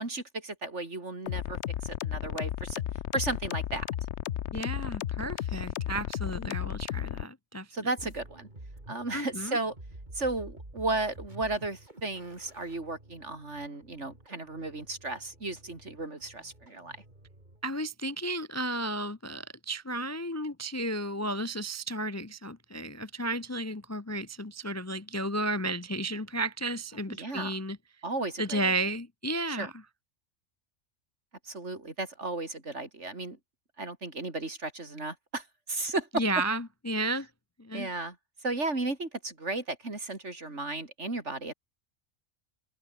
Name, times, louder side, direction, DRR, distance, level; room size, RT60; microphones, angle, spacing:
voice 1, 0.0-2.8 3.1-3.9 7.7-8.5 8.9-9.8 10.1-17.0 27.1-27.6 28.0-28.7 29.5-29.7 31.4-33.4 33.8-36.2 37.7-38.2 38.4-41.5, right 2 dB, 60° right, 4.3 m, -34 dB
sound 1, 1.3-7.2, left 11 dB, 65° left, 1.0 m, -34 dB
voice 2, 4.5-7.7 9.1-9.6 17.6-27.8 28.4-29.7 36.1-37.3 37.6-37.9, right 1 dB, 15° left, 0.7 m, -33 dB
sound 2, 8.0-17.7, right 1 dB, 35° right, 4.6 m, -50 dB
open air
omnidirectional pair, 1.3 m